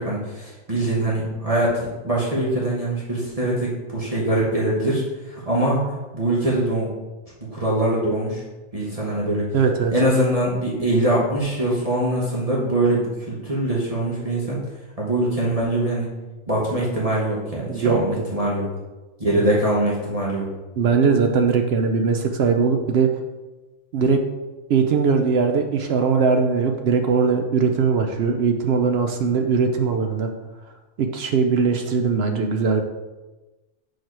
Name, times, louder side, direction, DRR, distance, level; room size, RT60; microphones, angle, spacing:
voice 1, 0.0-6.9 7.5-8.4 8.7-9.5 9.9-14.6 15.0-16.1 16.5-18.7 19.2-20.5, right 1 dB, 30° right, -6 dB, 1.1 m, -23 dB
voice 2, 9.5-9.9 17.7-18.3 20.8-23.1 23.9-24.2 24.7-30.3 31.0-32.8, right 5 dB, 65° right, 5 dB, 0.7 m, -20 dB
4.6 x 4.4 x 4.6 m, 1.2 s
omnidirectional pair, 1.3 m